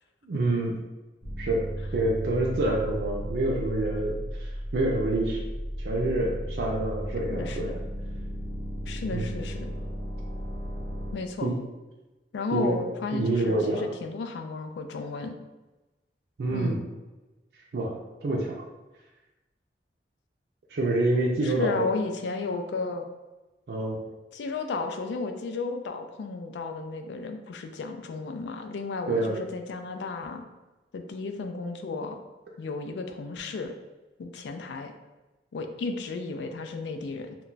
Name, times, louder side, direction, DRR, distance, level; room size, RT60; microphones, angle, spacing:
voice 1, 0.2-0.7 1.4-1.6 1.9-5.4 5.8-7.8 9.1-9.2 11.4-11.5 12.5-12.8 13.1-13.8 16.4-16.8 17.7-17.9 18.2-18.5 20.7-21.9 23.7-24.0 29.1-29.3, right 2 dB, 65° right, -3 dB, 0.4 m, -27 dB
sound 1, 1.2-11.1, equal, 40° left, 0.8 m, -35 dB
voice 2, 7.3-7.8 8.9-9.7 11.1-11.5 12.3-15.4 16.5-16.8 21.4-23.1 24.3-30.5 30.9-32.2 32.6-33.7 34.2-34.9 35.5-37.4, left 3 dB, 80° left, 6 dB, 0.3 m, -33 dB
2.2 x 2.2 x 3.8 m, 1.1 s
head